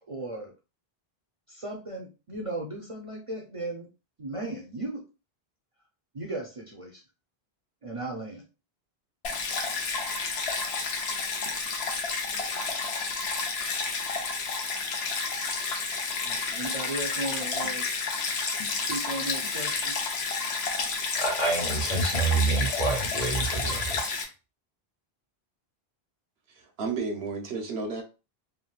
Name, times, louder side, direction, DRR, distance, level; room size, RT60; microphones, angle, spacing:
voice 1, 0.1-0.5 1.5-3.9 4.2-5.0 6.1-7.0 7.8-8.4 16.2-17.8 18.9-19.9, right 2 dB, 40° right, 0.5 m, -36 dB
Stream, 9.2-24.2, left 4 dB, 90° left, 1.0 m, -30 dB
voice 2, 21.2-24.1, right 3 dB, 50° left, 1.1 m, -27 dB
voice 3, 26.5-28.0, right 4 dB, 80° right, 1.0 m, -32 dB
3.4 x 2.4 x 2.3 m
omnidirectional pair, 1.0 m